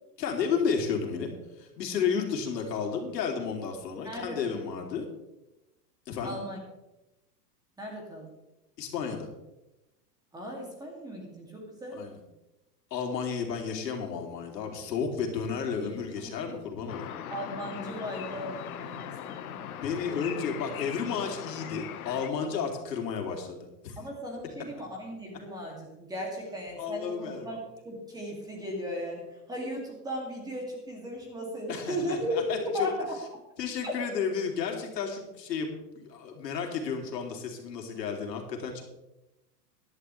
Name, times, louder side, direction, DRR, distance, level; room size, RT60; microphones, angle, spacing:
voice 1, 0.2-1.3 1.6-5.1 6.1-6.4 8.8-9.3 11.9-12.2 12.9-17.1 19.8-24.0 26.8-27.5 31.7-32.9 33.6-35.7 35.9-38.8, left 6 dB, 80° left, 2 dB, 2.9 m, -32 dB
voice 2, 4.0-4.7 6.2-6.6 7.8-8.3 10.3-12.0 15.7-16.5 17.3-19.6 24.0-33.2 33.8-33.9, equal, 10° right, 0 dB, 2.3 m, -36 dB
sound 1, 16.9-22.3, left 10 dB, 60° left, 1.3 m, -40 dB
14.5 x 11.0 x 3.2 m, 0.98 s
supercardioid pair, 155°, 49 cm